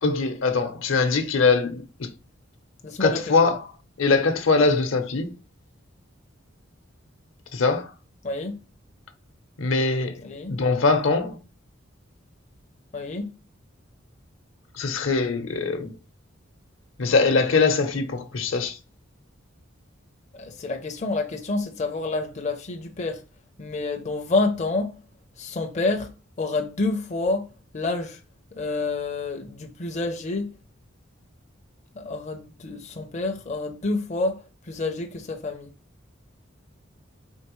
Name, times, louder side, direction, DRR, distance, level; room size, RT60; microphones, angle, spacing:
voice 1, 0.0-2.1 3.0-3.6 4.0-5.3 7.5-7.9 9.6-10.2 10.5-11.4 14.7-15.9 17.0-18.8, left 4 dB, 75° left, 0.8 m, -22 dB
voice 2, 2.8-3.5 8.2-8.6 10.2-10.6 12.9-13.4 20.3-23.2 23.6-25.0 25.4-26.1 26.4-28.2 28.5-30.5 32.0-35.7, left 2 dB, 35° left, 0.5 m, -28 dB
4.4 x 3.3 x 3.0 m
head